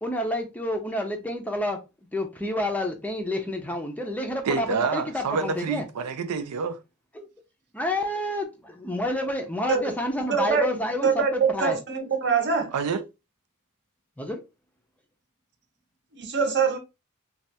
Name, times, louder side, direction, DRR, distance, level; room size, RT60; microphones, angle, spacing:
voice 1, 0.0-1.8 2.1-5.8 7.2-7.3 7.7-11.8 14.2-14.4, left 1 dB, 5° left, 0.4 m, -29 dB
voice 2, 4.4-6.8 12.7-13.0, right 5 dB, 90° right, 0.5 m, -27 dB
voice 3, 10.3-12.7 16.2-16.8, right 5 dB, 50° right, 0.8 m, -24 dB
3.2 x 2.3 x 2.7 m
head